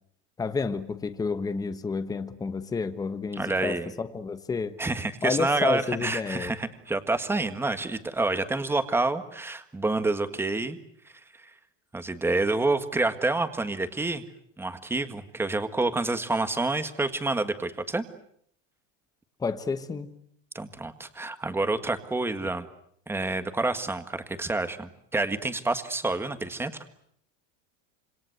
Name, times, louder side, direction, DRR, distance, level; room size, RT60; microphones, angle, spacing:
voice 1, 0.4-4.8 5.2-6.5 19.4-20.1, left 4 dB, 10° left, 1.2 m, -30 dB
voice 2, 3.3-3.9 4.8-10.8 11.9-14.2 14.6-18.0 20.5-22.7 23.1-27.1, right 2 dB, 5° right, 1.7 m, -28 dB
27.0 x 26.5 x 8.0 m
supercardioid pair, 160°, 36 cm